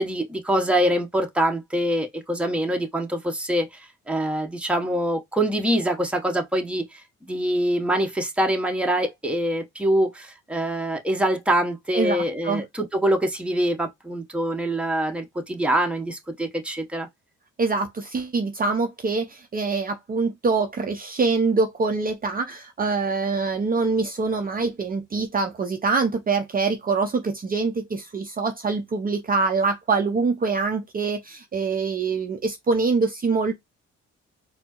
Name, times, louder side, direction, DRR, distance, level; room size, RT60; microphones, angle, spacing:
voice 1, 0.0-3.7 4.1-7.0 7.3-17.1, right 1 dB, 5° right, 0.9 m, -24 dB
voice 2, 11.9-12.6 17.6-33.5, right 4 dB, 30° right, 0.6 m, -24 dB
4.2 x 2.0 x 2.9 m
cardioid pair, 90°, 30 cm